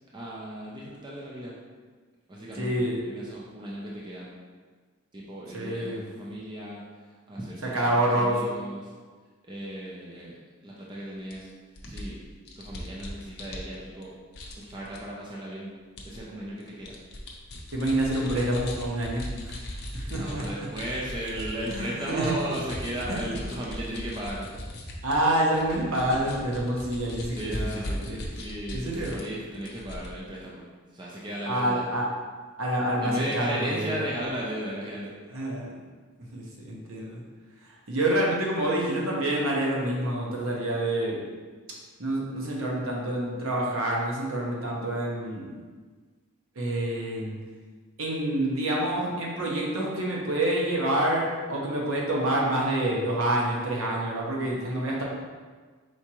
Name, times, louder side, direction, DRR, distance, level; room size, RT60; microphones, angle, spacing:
voice 1, 0.1-1.6 2.3-4.3 5.1-6.8 7.1-8.9 9.5-10.4 10.6-11.5 11.8-12.2 12.6-14.1 14.6-15.7 16.0-16.9 20.1-24.5 27.3-28.0 28.3-30.7 30.9-31.8 33.0-35.1, right 1 dB, 20° right, -5 dB, 0.5 m, -36 dB
voice 2, 2.5-3.0 5.5-6.0 7.6-8.4 17.7-19.6 19.9-20.7 21.7-22.4 23.0-23.3 25.0-28.2 28.7-29.2 31.5-32.1 32.6-34.0 35.3-35.7 36.3-37.2 37.6-41.2 41.7-45.5 46.5-47.4 48.0-55.0, right 1 dB, 70° right, -3 dB, 0.9 m, -27 dB
sound 1, 11.3-11.4 11.8-14.0 14.3-15.0 16.0-16.2 16.6-21.8 22.1-29.3 29.5-30.1, left 1 dB, 50° left, 0.6 m, -38 dB
4.5 x 3.5 x 3.0 m, 1.5 s
head